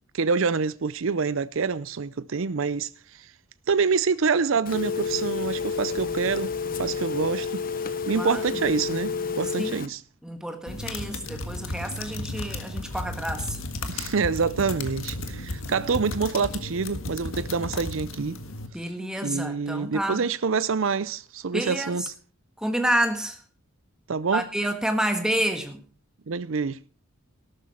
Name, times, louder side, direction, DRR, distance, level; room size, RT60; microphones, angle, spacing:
voice 1, 0.1-3.3 3.7-7.6 8.1-10.0 13.9-18.4 19.2-22.0 24.1-24.5 26.3-26.8, right 5 dB, 65° right, 0.5 m, -26 dB
Telephone, 4.7-9.9, left 5 dB, 40° left, 0.9 m, -30 dB
voice 2, 10.2-13.6 18.7-20.2 21.5-22.1 22.6-23.4 24.3-25.8, right 1 dB, 5° right, 1.6 m, -29 dB
sound 1, 10.7-18.7, left 2 dB, 70° left, 1.7 m, -34 dB
13.5 x 12.5 x 4.3 m
head